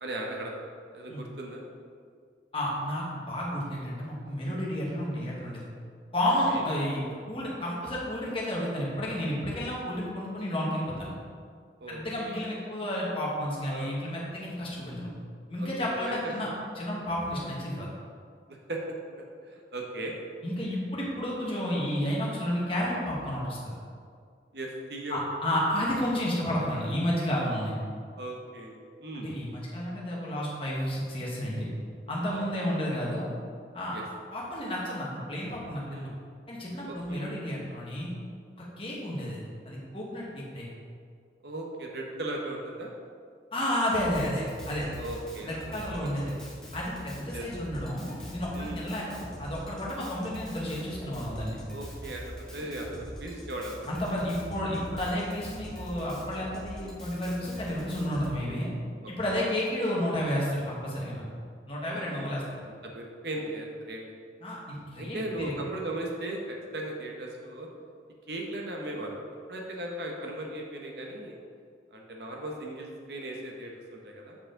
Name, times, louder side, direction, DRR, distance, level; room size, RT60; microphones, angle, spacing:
voice 1, 0.0-0.5 0.9-1.6 6.5-6.6 11.8-12.4 13.7-13.9 15.6-16.3 17.3-17.5 18.7-18.8 19.2-20.1 24.5-25.2 28.1-29.3 32.3-32.8 33.9-34.0 35.9-36.2 36.9-37.3 41.4-42.9 45.0-45.7 47.3-47.5 48.5-48.8 51.7-53.9 58.5-58.7 59.0-59.4 61.8-64.0 65.0-67.7 68.3-69.2 69.5-71.4 71.9-74.4, right 1 dB, 60° right, 0 dB, 1.0 m, -38 dB
voice 2, 2.5-5.7 6.1-11.1 11.9-15.1 15.5-16.5 16.8-17.9 20.4-23.7 25.1-27.7 29.2-31.7 32.1-33.3 33.7-34.0 34.3-36.1 36.5-38.1 38.6-40.7 43.5-44.9 45.5-46.3 46.7-51.6 53.9-58.7 59.1-61.2 61.7-62.4 64.4-65.6, equal, 30° left, -5 dB, 1.4 m, -31 dB
Drum kit, 43.9-58.3, equal, 5° left, 1.0 m, -43 dB
7.2 x 4.7 x 3.8 m, 2.2 s
head